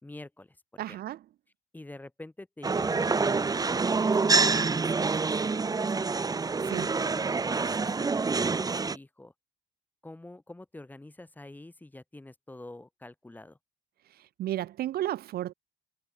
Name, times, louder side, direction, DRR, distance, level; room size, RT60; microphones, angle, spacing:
voice 1, 0.0-1.0 1.7-6.5 6.9-9.3 10.0-13.6, left 2 dB, 10° left, 4.4 m, -47 dB
voice 2, 0.8-1.2 6.7-6.9 14.1-15.5, right 13 dB, 65° right, 1.8 m, -33 dB
sound 1, 2.6-9.0, right 4 dB, 20° right, 1.5 m, -26 dB
cardioid pair, 110°, 17 cm